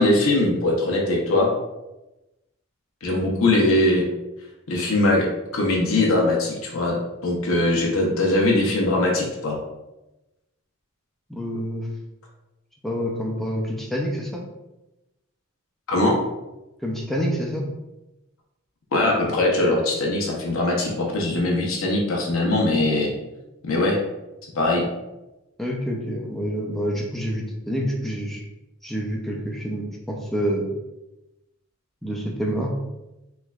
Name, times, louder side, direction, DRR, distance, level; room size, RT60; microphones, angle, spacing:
voice 1, 0.0-1.5 3.0-4.1 4.7-7.0 7.2-9.6 15.9-16.2 18.9-23.1 23.6-24.0 24.5-24.9, left 2 dB, 70° left, -1 dB, 0.7 m, -21 dB
voice 2, 11.3-11.9 12.8-14.4 16.8-17.6 25.6-28.4 28.8-30.7 32.0-32.7, equal, ahead, -2 dB, 0.4 m, -27 dB
3.3 x 3.1 x 2.3 m, 0.98 s
head